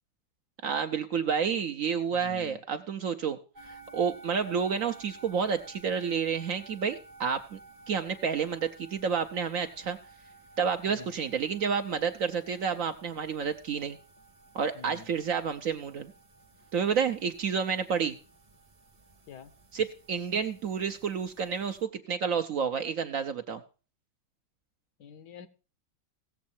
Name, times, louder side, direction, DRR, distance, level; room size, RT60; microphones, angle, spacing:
voice 1, 0.6-3.4 3.6-7.6 7.9-10.0 10.6-14.0 14.5-16.1 16.7-18.2 19.7-23.6, right 6 dB, 60° right, 8 dB, 0.9 m, -30 dB
voice 2, 2.1-2.6 10.9-11.1 14.7-15.1 19.3-19.5 25.0-25.5, left 7 dB, 70° left, 13 dB, 1.3 m, -47 dB
sound 1, 3.5-21.8, right 3 dB, 35° right, 1.0 m, -54 dB
16.5 x 7.3 x 4.3 m, 0.35 s
omnidirectional pair, 1.9 m